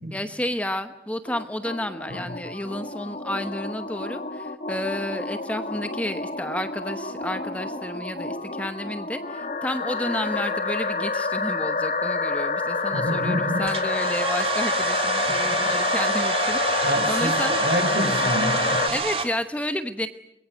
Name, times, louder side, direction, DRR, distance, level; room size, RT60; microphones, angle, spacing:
voice 1, 0.1-17.6 18.9-20.1, left 1 dB, 5° left, 9 dB, 0.9 m, -31 dB
sound 1, 1.3-18.9, left 3 dB, 45° left, 1.9 m, -28 dB
voice 2, 12.9-13.6 15.3-15.6 16.8-18.8, equal, 60° right, 8 dB, 4.6 m, -28 dB
Domestic sounds home sounds, 13.7-19.3, right 4 dB, 30° right, 3.0 m, -27 dB
24.0 x 22.0 x 9.3 m, 0.81 s
head